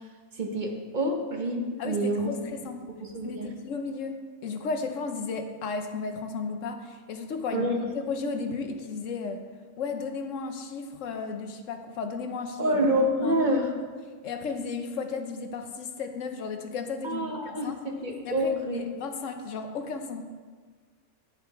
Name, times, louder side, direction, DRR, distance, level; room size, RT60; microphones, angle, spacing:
voice 1, 0.4-2.3 3.0-3.5 7.5-7.8 12.6-13.7 17.0-18.8, right 1 dB, 45° right, 2 dB, 0.9 m, -27 dB
voice 2, 1.8-2.9 3.2-7.7 8.1-9.4 9.8-12.8 13.2-13.4 14.2-17.8 18.2-20.2, left 4 dB, 90° left, 6 dB, 1.1 m, -34 dB
9.5 x 5.6 x 4.6 m, 1.5 s
omnidirectional pair, 1.3 m